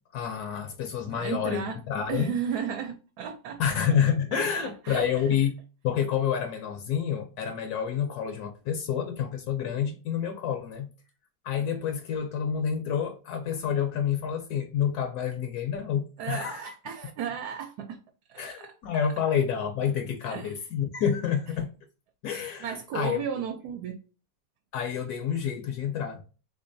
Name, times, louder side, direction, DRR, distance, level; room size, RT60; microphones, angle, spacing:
voice 1, 0.1-2.3 3.6-5.5 5.8-10.9 11.4-16.7 18.4-21.7 22.2-23.2 24.7-26.2, left 8 dB, 75° left, 1.1 m, -28 dB
voice 2, 1.1-1.8 2.1-3.6 4.3-5.1 16.2-18.0 18.3-18.7 20.3-20.5 22.6-24.0, right 8 dB, 75° right, 1.0 m, -34 dB
3.7 x 3.1 x 2.5 m
omnidirectional pair, 1.8 m